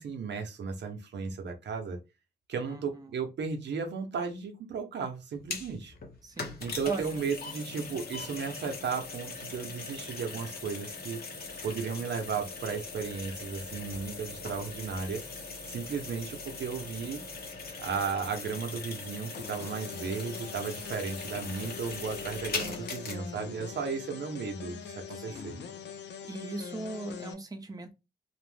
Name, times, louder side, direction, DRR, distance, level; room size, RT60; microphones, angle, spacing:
voice 1, 0.0-2.0 2.5-5.9 6.6-11.2 11.6-15.2 15.7-17.2 17.8-25.5, right 5 dB, 85° right, 0.6 m, -35 dB
voice 2, 2.7-3.2 6.2-7.2 25.1-25.7 26.2-27.9, right 3 dB, 20° right, 0.6 m, -39 dB
sound 1, 5.3-23.1, left 4 dB, 60° left, 0.8 m, -40 dB
sound 2, 19.3-27.3, left 7 dB, 80° left, 0.5 m, -43 dB
2.5 x 2.0 x 3.2 m
wide cardioid pair, 100°, 18 cm